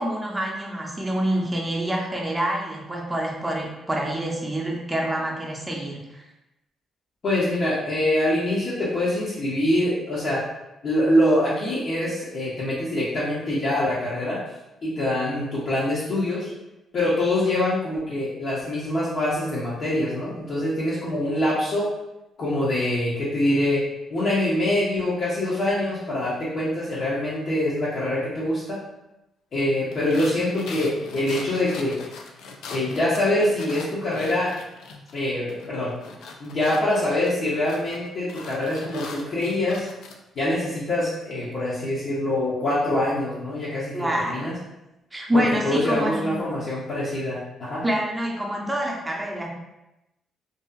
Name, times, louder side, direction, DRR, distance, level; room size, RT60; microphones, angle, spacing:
voice 1, 0.0-6.3 43.9-44.5 45.1-46.3 47.8-49.5, equal, 15° right, -1 dB, 0.6 m, -26 dB
voice 2, 7.2-10.4 10.8-14.4 14.8-16.5 16.9-21.9 22.4-23.8 24.1-28.8 29.5-32.0 32.7-34.5 35.1-35.9 36.4-39.9 40.4-44.6 45.3-47.8, left 1 dB, 55° left, -9 dB, 0.7 m, -24 dB
sound 1, 29.9-35.2 35.5-40.2, left 3 dB, 80° left, 0.3 m, -40 dB
2.7 x 2.4 x 2.3 m, 0.93 s
cardioid pair, 90°, 0 cm